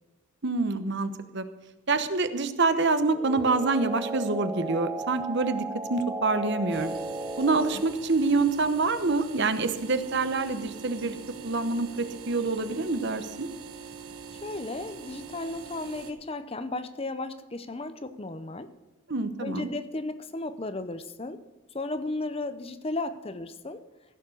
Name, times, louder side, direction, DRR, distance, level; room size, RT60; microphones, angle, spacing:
voice 1, 0.4-1.4 1.9-5.6 5.9-6.9 7.4-11.2 11.4-13.5 19.1-19.7, right 3 dB, 50° right, 10 dB, 1.0 m, -26 dB
sound 1, 3.1-8.0, right 2 dB, 15° right, 1.0 m, -35 dB
sound 2, 6.7-16.1, right 6 dB, 80° right, 1.3 m, -43 dB
voice 2, 14.4-18.7 19.4-21.4 21.7-23.8, left 2 dB, 25° left, 11 dB, 0.6 m, -34 dB
15.5 x 7.3 x 6.5 m, 1.1 s
head